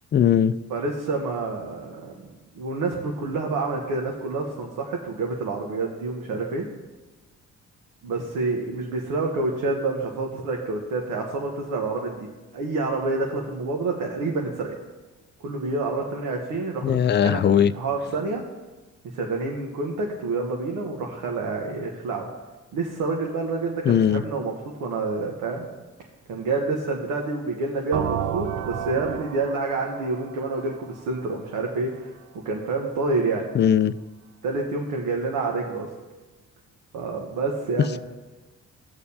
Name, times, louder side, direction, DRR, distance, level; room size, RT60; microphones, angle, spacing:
voice 1, 0.1-0.5 16.8-17.7 23.8-24.2 33.5-33.9, left 9 dB, 35° left, 0.4 m, -19 dB
voice 2, 0.7-6.7 8.0-12.3 12.5-14.7 15.4-18.4 19.1-22.2 22.7-24.5 24.8-25.7 26.3-32.1 32.4-33.5 34.4-35.9 36.9-38.0, right 3 dB, 90° right, 1.2 m, -28 dB
sound 1, 27.9-31.6, right 9 dB, 65° right, 0.5 m, -32 dB
18.5 x 6.6 x 2.8 m
cardioid pair, 90°, 30 cm